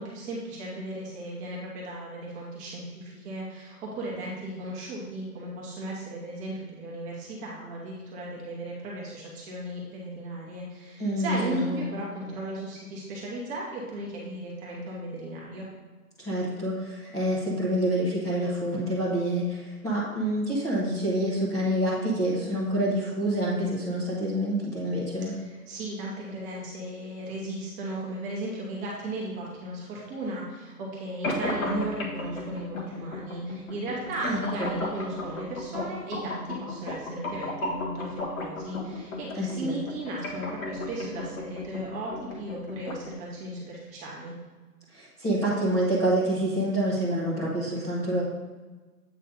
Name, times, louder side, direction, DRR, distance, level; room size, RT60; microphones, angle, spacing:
voice 1, 0.0-15.6 25.4-44.3, right 1 dB, 15° right, -4 dB, 1.2 m, -36 dB
voice 2, 11.0-11.8 16.2-25.3 34.2-34.7 39.3-39.7 44.9-48.2, right 1 dB, 5° left, -10 dB, 0.9 m, -27 dB
sound 1, 31.2-43.2, left 2 dB, 60° left, 1.6 m, -35 dB
8.2 x 3.2 x 5.1 m, 1.3 s
figure-of-eight pair, 135°, 47 cm